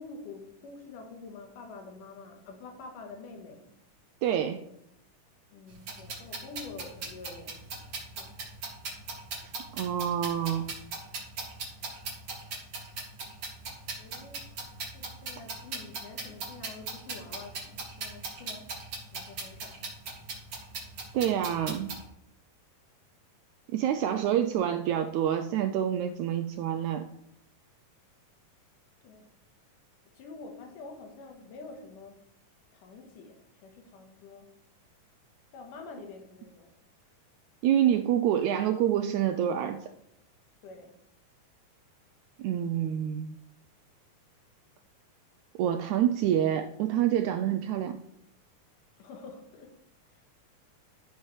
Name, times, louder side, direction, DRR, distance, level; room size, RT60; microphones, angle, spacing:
voice 1, 0.0-3.7 5.5-8.4 14.0-14.6 14.9-18.8 19.1-19.9 24.1-24.2 29.0-29.3 30.1-32.2 32.7-34.5 35.5-36.7 40.6-41.0 45.9-46.1 49.0-49.8 50.1-50.2, left 4 dB, 75° left, 4 dB, 2.8 m, -47 dB
voice 2, 4.2-4.6 9.7-10.7 21.1-21.9 23.7-27.1 37.6-39.9 42.4-43.4 45.6-48.0, right 10 dB, 85° right, 7 dB, 1.7 m, -27 dB
sound 1, 5.7-22.0, right 4 dB, 50° right, 3.0 m, -39 dB
13.5 x 6.7 x 3.2 m, 0.75 s
omnidirectional pair, 3.8 m